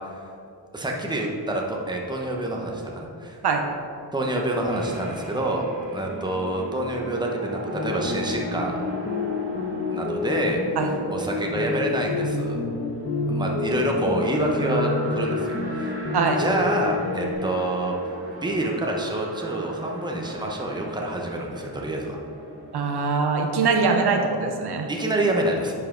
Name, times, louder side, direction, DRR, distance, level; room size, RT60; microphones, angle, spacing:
voice 1, 0.7-3.4 4.1-5.6 5.9-8.8 9.9-10.6 11.1-12.6 13.3-15.9 16.4-17.9 18.4-22.2 24.9-25.7, right 1 dB, 10° right, 0 dB, 1.0 m, -27 dB
sound 1, 4.7-23.1, right 1 dB, 30° right, 1.6 m, -39 dB
sound 2, 7.7-17.3, left 4 dB, 35° left, 1.1 m, -28 dB
voice 2, 22.7-24.9, right 4 dB, 70° right, 4 dB, 0.9 m, -22 dB
10.5 x 5.7 x 3.9 m, 2.5 s
wide cardioid pair, 115°, 41 cm